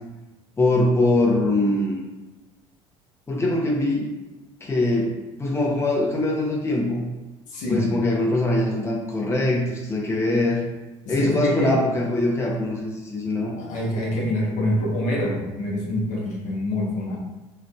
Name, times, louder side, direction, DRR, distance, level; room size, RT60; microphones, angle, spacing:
voice 1, 0.6-2.0 3.3-4.1 4.6-5.1 5.4-7.1 7.7-10.6 11.1-13.5, left 2 dB, 15° left, -2 dB, 0.7 m, -22 dB
voice 2, 7.5-7.9 11.1-11.7 13.6-17.2, left 1 dB, 55° left, -2 dB, 0.9 m, -26 dB
4.4 x 2.5 x 2.3 m, 1.1 s
hypercardioid pair, 65°, 15 cm